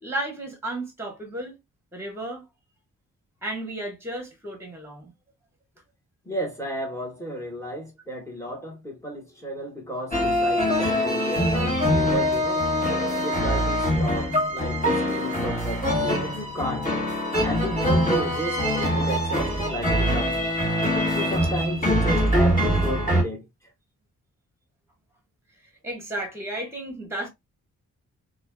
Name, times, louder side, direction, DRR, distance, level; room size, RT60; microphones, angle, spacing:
voice 1, 0.0-1.5 1.9-2.4 3.4-5.1 25.8-27.3, right 1 dB, 10° right, 1.4 m, -33 dB
voice 2, 6.2-12.7 13.2-16.9 17.4-20.4 21.1-23.4, equal, 10° left, 1.4 m, -33 dB
sound 1, 10.1-23.2, equal, 25° left, 1.7 m, -23 dB
3.1 x 2.4 x 2.2 m
cardioid pair, 60°, 33 cm